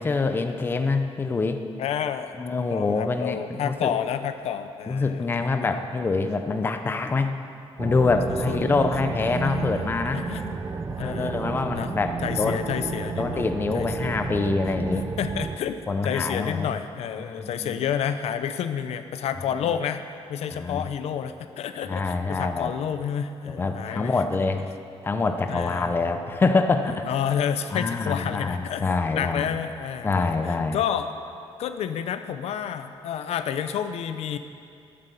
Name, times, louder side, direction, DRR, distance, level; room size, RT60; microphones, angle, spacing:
voice 1, 0.0-1.6 2.4-3.9 4.9-7.4 7.8-10.2 11.0-12.7 13.2-15.1 15.9-16.7 17.2-17.8 20.5-20.8 21.9-22.7 23.5-24.6 25.0-27.1 27.7-29.6 30.0-30.8, left 3 dB, 20° left, 6 dB, 0.6 m, -25 dB
voice 2, 1.8-2.3 2.7-5.3 5.6-5.8 8.5-8.6 9.4-9.7 10.1-10.6 10.9-11.9 12.2-13.5 13.7-14.3 15.2-20.0 20.3-24.2 24.5-24.6 25.5-26.1 27.1-31.1 31.6-34.4, left 8 dB, 80° left, 9 dB, 0.6 m, -30 dB
sound 1, 7.8-15.6, right 5 dB, 25° right, 0.5 m, -32 dB
11.0 x 9.6 x 6.9 m, 2.4 s
wide cardioid pair, 175°, 11 cm